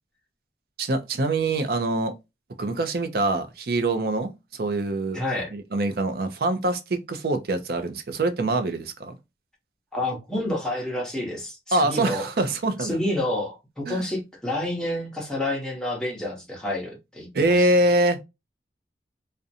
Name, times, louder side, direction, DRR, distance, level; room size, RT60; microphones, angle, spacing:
voice 1, 0.8-2.1 2.6-4.3 4.6-5.2 5.5-9.2 11.7-13.0 13.9-14.0 17.3-18.2, right 2 dB, 55° right, 0.5 m, -24 dB
voice 2, 5.1-5.5 9.9-12.3 12.8-17.9, left 1 dB, 5° left, 0.9 m, -29 dB
2.5 x 2.1 x 2.6 m
head